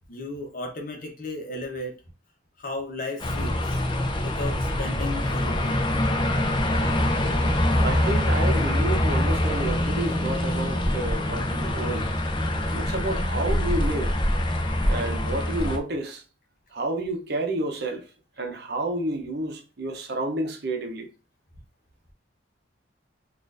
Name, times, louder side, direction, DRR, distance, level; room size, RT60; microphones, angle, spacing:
voice 1, 0.1-1.9 2.6-3.8 4.2-5.8, left 2 dB, 45° left, 0.9 m, -35 dB
sound 1, 3.2-15.8, left 1 dB, 25° left, 0.5 m, -24 dB
voice 2, 7.8-12.1 12.7-14.2 14.9-16.2 16.7-18.0 18.4-21.1, right 2 dB, 55° right, 0.7 m, -30 dB
4.2 x 2.5 x 2.5 m
head